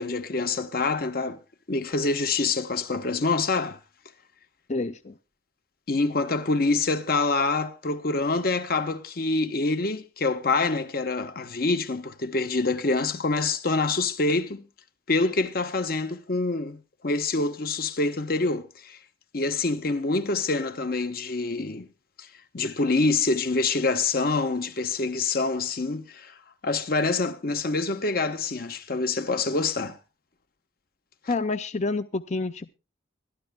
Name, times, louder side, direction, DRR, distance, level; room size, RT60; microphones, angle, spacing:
voice 1, 0.0-1.4 1.7-3.8 5.9-14.7 15.1-19.0 19.3-21.9 22.2-22.3 22.5-26.3 26.6-30.0, left 3 dB, 55° left, 1.0 m, -26 dB
voice 2, 4.7-5.1 31.3-32.7, left 3 dB, 40° left, 0.5 m, -28 dB
24.0 x 11.5 x 2.2 m
head